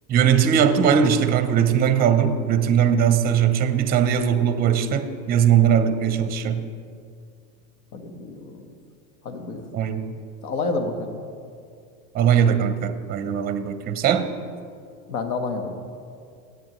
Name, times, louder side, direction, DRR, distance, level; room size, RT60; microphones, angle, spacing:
voice 1, 0.1-6.6 9.7-10.1 12.1-14.3, right 8 dB, 20° right, 10 dB, 0.6 m, -20 dB
voice 2, 7.9-8.7 9.2-9.6 10.4-11.2 15.1-15.8, left 3 dB, 80° left, 6 dB, 1.4 m, -29 dB
17.5 x 8.0 x 3.0 m, 2.3 s
supercardioid pair, 120°, 43 cm